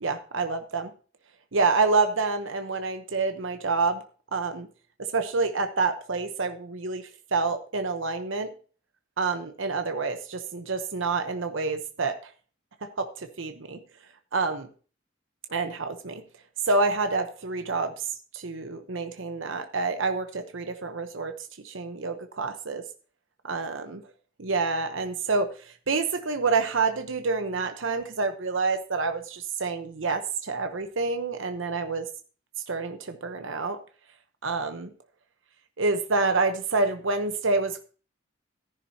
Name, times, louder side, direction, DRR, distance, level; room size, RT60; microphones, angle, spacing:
voice 1, 0.0-0.9 1.5-4.0 4.3-4.7 5.0-8.5 9.2-12.2 12.8-13.8 14.3-14.7 15.5-16.2 16.7-22.8 23.4-24.0 24.4-32.1 32.7-33.8 34.4-34.9 35.8-37.8, right 4 dB, 70° right, 7 dB, 0.9 m, -28 dB
13.5 x 10.5 x 2.8 m, 0.38 s
head